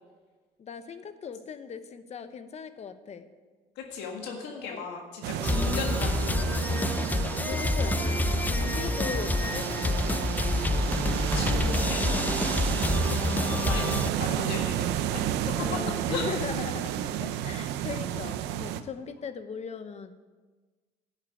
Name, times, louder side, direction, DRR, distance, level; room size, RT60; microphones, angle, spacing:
voice 1, 0.6-3.3 4.6-4.8 6.6-7.0 7.4-11.0 12.2-12.3 13.6-14.0 15.6-20.1, left 6 dB, 40° left, 10 dB, 1.0 m, -39 dB
voice 2, 3.8-6.9 11.1-12.4 13.4-15.2 15.6-15.8 16.1-16.3, left 5 dB, 85° left, 1 dB, 1.8 m, -37 dB
sound 1, 5.2-18.8, right 10 dB, 90° right, 0.7 m, -31 dB
sound 2, 5.4-14.1, left 2 dB, 10° left, 0.3 m, -28 dB
11.0 x 7.6 x 8.6 m, 1.4 s
cardioid pair, 110°, 17 cm